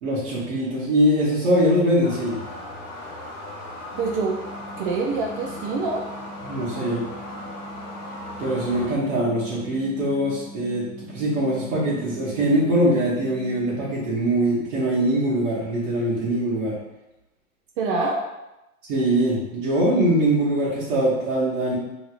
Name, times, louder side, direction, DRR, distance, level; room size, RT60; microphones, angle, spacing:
voice 1, 0.0-2.4 6.4-7.0 8.4-16.8 18.9-21.7, right 1 dB, 65° right, -8 dB, 1.1 m, -22 dB
sound 1, 2.0-8.9, left 1 dB, 85° left, 0.9 m, -37 dB
sound 2, 3.9-13.9, equal, 30° left, 1.1 m, -42 dB
voice 2, 4.0-4.4 4.8-6.0 17.8-18.2, right 3 dB, 40° right, 0 dB, 0.4 m, -25 dB
3.0 x 2.8 x 2.4 m, 0.95 s
hypercardioid pair, 115°, 42 cm